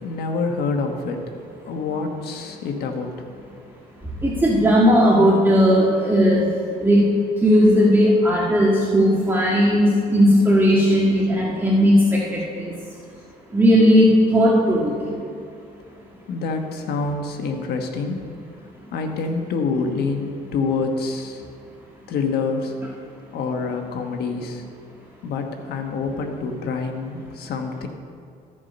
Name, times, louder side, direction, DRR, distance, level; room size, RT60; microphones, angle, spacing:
voice 1, 0.0-1.2 1.7-3.1 16.3-18.2 18.9-21.4 22.1-22.7 23.3-24.6 25.2-27.9, left 4 dB, 70° left, 4 dB, 1.3 m, -26 dB
voice 2, 4.2-6.4 6.8-7.0 7.4-12.0 12.3-12.4 13.5-14.9, equal, 10° right, -5 dB, 1.7 m, -16 dB
13.5 x 7.3 x 5.4 m, 2.4 s
cardioid pair, 110°, 17 cm